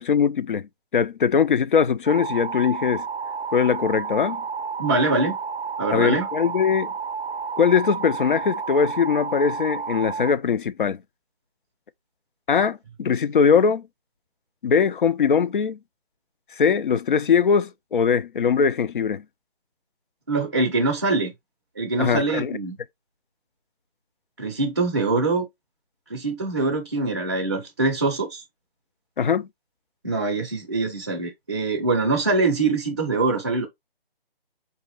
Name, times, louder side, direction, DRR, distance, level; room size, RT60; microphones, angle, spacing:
voice 1, 0.0-3.1 3.5-4.4 5.9-6.9 7.6-11.0 12.5-13.8 14.6-15.8 16.6-19.2 22.0-22.6 29.2-29.5, left 6 dB, 55° left, 0.4 m, -21 dB
sound 1, 2.1-10.3, right 6 dB, 75° right, 0.5 m, -31 dB
voice 2, 4.8-5.4 5.8-6.3 20.3-21.3 21.8-22.8 24.4-25.5 26.1-28.4 30.0-33.7, right 3 dB, 20° right, 0.5 m, -23 dB
4.5 x 2.8 x 3.2 m
figure-of-eight pair, 155°, 30 cm